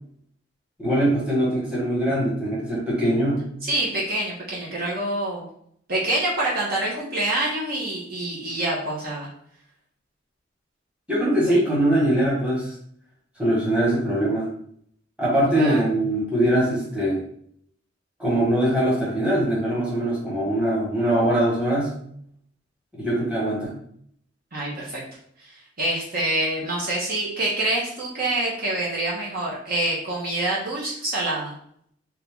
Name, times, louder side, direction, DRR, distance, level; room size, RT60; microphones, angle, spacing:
voice 1, 0.8-3.5 11.1-12.7 13.4-14.5 15.2-17.2 18.2-22.0 22.9-23.7, right 1 dB, 5° right, -7 dB, 1.4 m, -22 dB
voice 2, 3.6-5.4 5.9-9.3 11.5-11.6 15.4-15.8 24.5-25.0 25.4-31.5, right 1 dB, 50° right, -5 dB, 1.0 m, -26 dB
3.0 x 2.8 x 3.7 m, 0.66 s
head